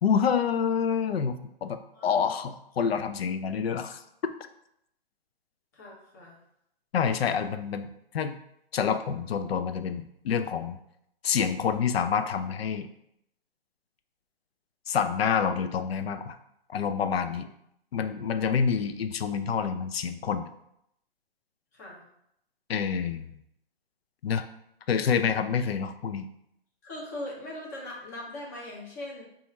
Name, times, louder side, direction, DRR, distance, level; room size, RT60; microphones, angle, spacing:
voice 1, 0.0-1.8 2.0-4.3 6.9-8.4 8.7-10.8 11.2-12.9 14.9-16.4 16.7-17.5 17.9-20.5 22.7-23.3 24.2-24.5 24.9-26.3, left 7 dB, 70° left, 9 dB, 0.5 m, -27 dB
voice 2, 1.9-2.3 5.7-6.4 17.2-17.4 21.7-22.0 26.8-29.2, left 1 dB, 20° left, -3 dB, 0.6 m, -40 dB
2.8 x 2.4 x 4.1 m, 0.77 s
hypercardioid pair, 150°, 31 cm